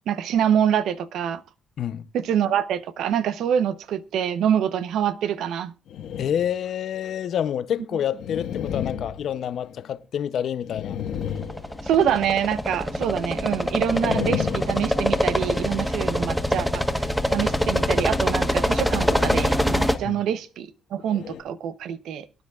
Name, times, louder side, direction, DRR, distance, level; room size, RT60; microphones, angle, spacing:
voice 1, 0.1-1.4 2.1-5.7 11.8-17.1 17.3-22.3, right 9 dB, 80° right, 0.8 m, -25 dB
sound 1, 5.9-6.6 7.0-7.1 8.1-10.0 10.6-12.3 13.8-15.6 18.9-19.7 20.1-20.3 21.0-21.4, left 8 dB, 85° left, 1.5 m, -33 dB
voice 2, 6.2-11.0 20.0-20.2, left 9 dB, 65° left, 0.6 m, -28 dB
sound 2, 11.3-20.0, equal, ahead, 1.2 m, -24 dB
23.0 x 10.0 x 2.4 m
cardioid pair, 90°, 0 cm